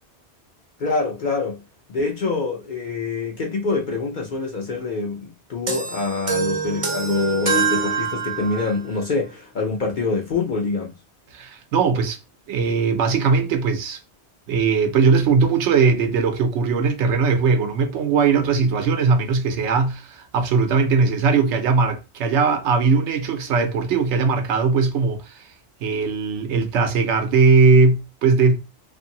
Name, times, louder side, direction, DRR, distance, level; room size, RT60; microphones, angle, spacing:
voice 1, 0.8-1.6 1.9-10.9, left 3 dB, 55° left, 0.6 m, -25 dB
sound 1, 5.7-8.9, right 5 dB, 40° right, 0.6 m, -25 dB
voice 2, 11.3-12.2 12.5-14.0 14.5-25.2 25.8-28.6, right 4 dB, 85° right, 0.9 m, -19 dB
2.6 x 2.5 x 2.7 m
omnidirectional pair, 1.2 m